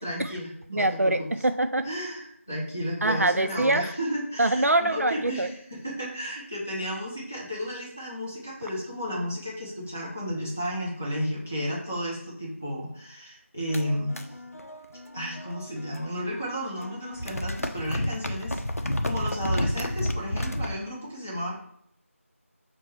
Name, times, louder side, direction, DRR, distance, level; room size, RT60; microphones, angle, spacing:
voice 1, 0.0-1.3 1.8-14.3 15.1-21.5, equal, 10° left, -6 dB, 0.4 m, -33 dB
voice 2, 0.7-1.9 3.0-3.9 4.4-5.5, right 2 dB, 90° right, 10 dB, 0.4 m, -24 dB
sound 1, 13.7-16.4 16.6-20.7, left 1 dB, 85° left, 0.5 m, -31 dB
5.9 x 2.2 x 3.1 m, 0.69 s
figure-of-eight pair, 170°, 8 cm